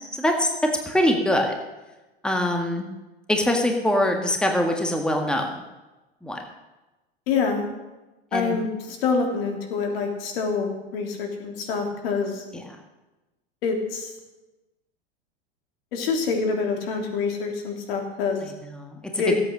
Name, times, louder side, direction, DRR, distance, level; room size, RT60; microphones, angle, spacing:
voice 1, 0.1-0.5 0.8-1.5 2.2-2.9 3.3-5.5 6.2-6.4 8.3-8.6 12.5-12.8 18.4-19.4, left 1 dB, 5° left, 3 dB, 1.6 m, -24 dB
voice 2, 7.3-7.7 8.3-12.4 13.6-14.1 15.9-18.4 19.2-19.4, left 5 dB, 65° left, 3 dB, 3.3 m, -26 dB
16.0 x 8.5 x 6.6 m, 1.1 s
hypercardioid pair, 115°, 31 cm